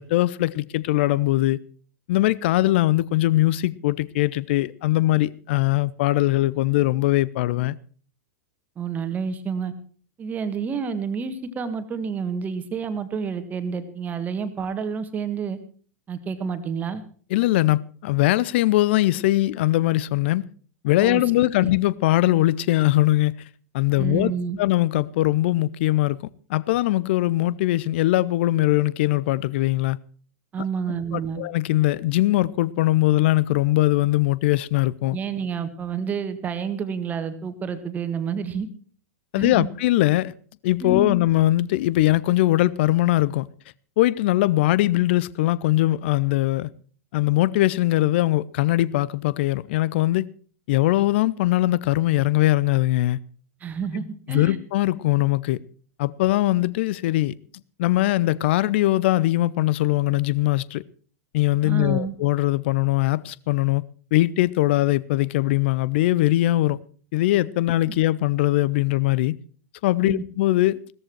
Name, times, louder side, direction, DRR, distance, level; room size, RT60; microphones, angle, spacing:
voice 1, 0.0-1.6 2.1-7.8 17.3-20.4 20.8-23.3 23.7-24.3 24.6-30.0 31.1-35.2 39.3-40.3 40.6-43.5 44.0-46.7 47.1-50.3 50.7-53.2 54.3-55.6 56.0-57.3 57.8-60.8 61.3-63.8 64.1-66.8 67.1-69.4 69.8-70.8, left 16 dB, 45° left, 0.6 m, -21 dB
voice 2, 8.8-9.7 10.2-15.6 16.1-17.0 21.0-21.7 24.0-24.6 30.5-31.4 35.1-38.7 39.4-39.7 40.8-41.2 53.6-54.6 61.6-62.2 70.0-70.2, right 6 dB, 20° right, 1.6 m, -29 dB
16.0 x 14.0 x 4.6 m
figure-of-eight pair, 95°, 8 cm